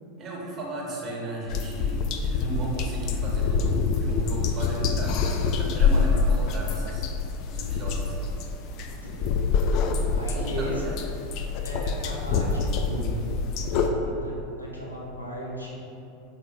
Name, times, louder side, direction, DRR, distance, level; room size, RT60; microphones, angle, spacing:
voice 1, 0.2-5.2 5.5-7.1 7.5-8.3 10.3-11.0, right 1 dB, 30° right, -3 dB, 0.9 m, -34 dB
sound 1, 1.5-13.9, left 5 dB, 45° left, 0.3 m, -26 dB
voice 2, 9.0-9.4 10.1-10.9 11.6-13.1 13.8-15.8, equal, 90° left, -5 dB, 0.7 m, -36 dB
5.2 x 3.7 x 2.3 m, 2.7 s
figure-of-eight pair, 80°, 0 cm